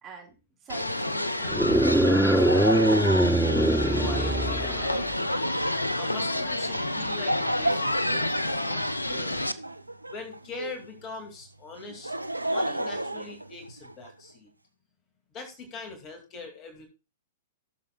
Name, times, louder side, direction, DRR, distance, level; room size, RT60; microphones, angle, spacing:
voice 1, 0.0-0.3 0.6-3.1 6.6-6.7, right 5 dB, 25° right, -1 dB, 4.0 m, -46 dB
sound 1, 0.7-9.5, left 1 dB, 85° left, 0.7 m, -29 dB
sound 2, 1.5-5.1, right 1 dB, ahead, 0.5 m, -23 dB
Laughter, 1.8-10.9 11.8-14.1, right 1 dB, 85° right, 0.6 m, -33 dB
voice 2, 3.9-5.4 5.9-8.3 8.6-9.4 10.1-14.5 15.3-16.9, left 3 dB, 30° left, 4 dB, 2.3 m, -42 dB
17.5 x 6.9 x 2.3 m, 0.30 s
figure-of-eight pair, 105°, 0 cm